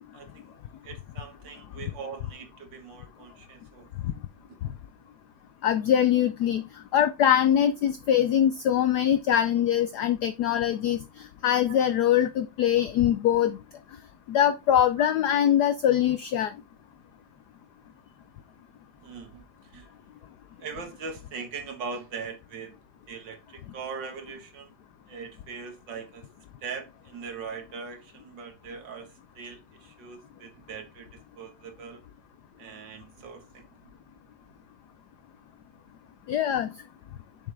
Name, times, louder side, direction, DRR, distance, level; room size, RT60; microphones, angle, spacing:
voice 1, 0.1-3.9 11.7-11.8 15.0-15.1 19.0-19.9 20.6-22.8 23.1-24.7 25.1-26.3 26.6-32.0 32.6-33.9, right 5 dB, 60° right, 2.0 m, -41 dB
voice 2, 5.6-13.6 14.3-16.5 36.3-36.7, left 10 dB, 80° left, 0.9 m, -23 dB
6.8 x 5.9 x 3.3 m
omnidirectional pair, 2.3 m